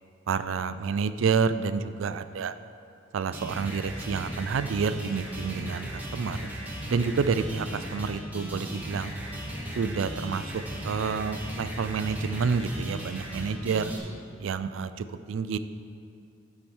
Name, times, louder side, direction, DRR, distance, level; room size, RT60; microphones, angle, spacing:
voice 1, 0.3-2.5 3.1-6.4 6.9-9.1 9.8-13.9 14.4-15.6, right 5 dB, 75° right, 12 dB, 0.4 m, -29 dB
sound 1, 3.3-14.0, equal, 10° right, 1.1 m, -37 dB
12.0 x 4.8 x 4.3 m, 2.5 s
head